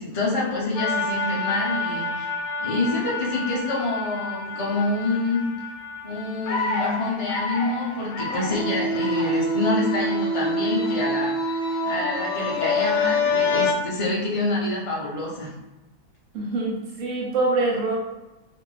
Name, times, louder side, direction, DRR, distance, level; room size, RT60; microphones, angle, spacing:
voice 1, 0.0-2.3 2.6-5.5 6.0-11.3 11.8-15.5, left 2 dB, 50° left, -5 dB, 0.3 m, -27 dB
sound 1, 0.8-13.7, left 2 dB, 90° left, 1.2 m, -27 dB
voice 2, 16.3-18.0, right 2 dB, 65° right, -2 dB, 0.8 m, -24 dB
2.6 x 2.5 x 3.1 m, 1.0 s
omnidirectional pair, 1.8 m